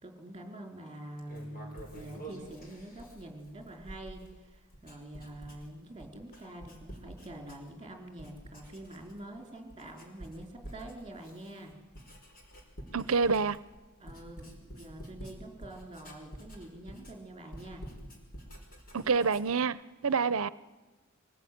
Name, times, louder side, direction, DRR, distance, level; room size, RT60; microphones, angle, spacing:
voice 1, 0.0-11.7 14.0-17.9, right 1 dB, 25° right, 4.4 m, -46 dB
Writing, 1.2-7.9 8.2-9.4 9.7-19.6, right 1 dB, 45° left, 5.0 m, -49 dB
voice 2, 12.9-13.6 18.9-20.5, right 5 dB, 75° right, 0.7 m, -27 dB
25.0 x 19.5 x 9.4 m
head